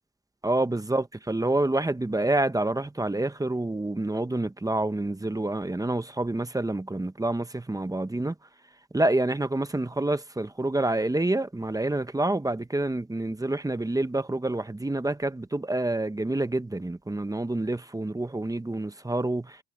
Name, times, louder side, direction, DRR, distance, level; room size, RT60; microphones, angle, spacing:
voice 1, 0.4-8.3 8.9-19.6, right 2 dB, 10° right, 1.2 m, -27 dB
cardioid pair, 90°, 30 cm